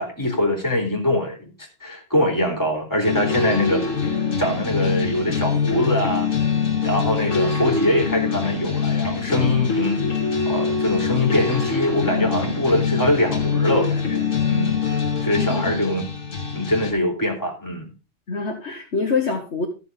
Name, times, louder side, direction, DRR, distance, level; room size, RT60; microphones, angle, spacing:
voice 1, 0.0-1.5 1.8-3.8 4.1-6.3 6.8-10.1 10.5-14.8 15.2-16.1 16.5-17.9, left 1 dB, 15° left, 3.3 m, -23 dB
sound 1, 3.0-16.9, left 5 dB, 80° left, 2.4 m, -24 dB
voice 2, 15.4-15.8 18.3-19.7, left 4 dB, 60° left, 1.8 m, -25 dB
13.5 x 7.1 x 3.8 m
omnidirectional pair, 1.3 m